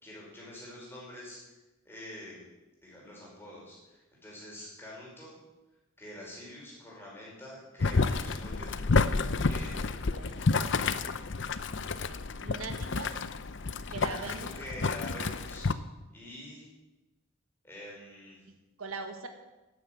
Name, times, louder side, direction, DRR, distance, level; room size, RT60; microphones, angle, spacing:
voice 1, 0.0-1.4 1.8-2.4 2.8-5.4 6.0-8.8 9.4-10.0 13.9-15.7 16.1-16.7 17.6-18.4, left 1 dB, 10° left, -5 dB, 5.1 m, -46 dB
Boiling, 7.8-15.7, left 4 dB, 60° left, 0.6 m, -30 dB
voice 2, 10.1-10.5 12.4-13.2 13.9-14.5 18.8-19.3, right 3 dB, 85° right, 6 dB, 1.6 m, -40 dB
12.0 x 9.6 x 7.9 m, 1.1 s
head